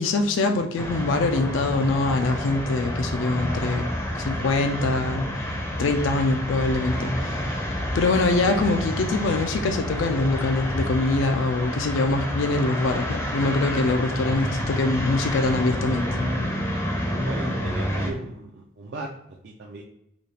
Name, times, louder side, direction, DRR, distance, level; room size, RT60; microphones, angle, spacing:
voice 1, 0.0-3.9 4.1-5.5 5.8-7.6 7.9-16.1, left 3 dB, 60° left, 5 dB, 0.4 m, -24 dB
sound 1, 0.8-18.1, equal, 10° left, 0.5 m, -29 dB
voice 2, 17.2-19.1 19.4-19.8, right 2 dB, 50° right, -1 dB, 0.4 m, -36 dB
4.0 x 2.3 x 3.3 m, 0.79 s
head